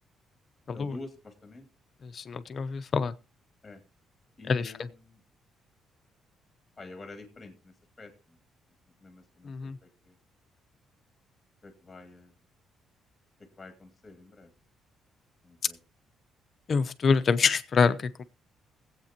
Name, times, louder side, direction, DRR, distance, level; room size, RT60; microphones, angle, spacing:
voice 1, 0.7-1.7 3.6-3.8 4.4-5.2 6.8-8.1 9.0-9.7 10.0-10.1 11.6-12.3 13.6-14.5 15.4-15.8, left 2 dB, 20° left, 2.6 m, -47 dB
voice 2, 2.1-3.1 4.5-4.7 9.5-9.8 16.7-18.2, left 5 dB, 40° left, 0.8 m, -26 dB
21.5 x 8.3 x 3.0 m
cardioid pair, 140°, 0 cm